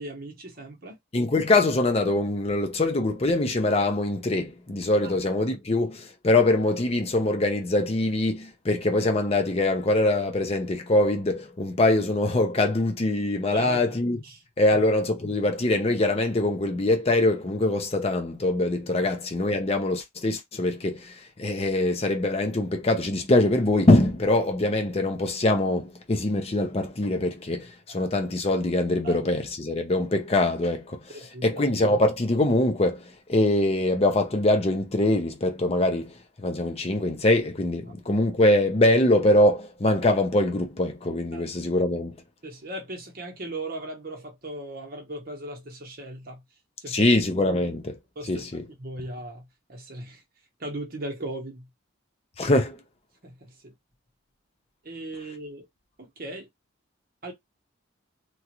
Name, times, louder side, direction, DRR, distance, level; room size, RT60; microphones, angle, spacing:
voice 1, 0.0-1.0 5.0-5.2 13.5-14.0 14.2-14.4 19.0-19.1 29.0-29.2 31.1-31.6 41.3-41.5 42.4-46.4 46.8-47.1 48.2-48.5 48.8-50.2 50.6-51.7 53.2-53.7 54.8-55.7 56.0-56.5 57.2-57.3, right 1 dB, 45° right, 0.9 m, -37 dB
voice 2, 1.1-14.2 14.6-42.2 46.9-48.0 48.3-48.6 52.4-52.8, left 2 dB, 30° left, 0.6 m, -23 dB
3.0 x 2.4 x 2.9 m
head